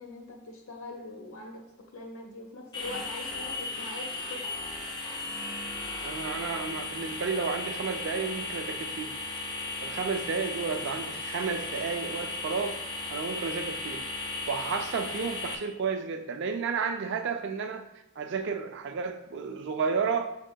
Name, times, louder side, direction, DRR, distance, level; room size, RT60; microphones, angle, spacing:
voice 1, 0.0-1.6 1.9-4.7, left 2 dB, 70° left, 0.9 m, -42 dB
sound 1, 2.7-15.5, left 3 dB, 20° left, 0.5 m, -36 dB
voice 2, 6.0-9.2 9.8-12.8 13.1-14.0 14.5-17.8 18.2-20.3, right 5 dB, 55° right, 0.4 m, -32 dB
6.3 x 3.6 x 2.2 m
head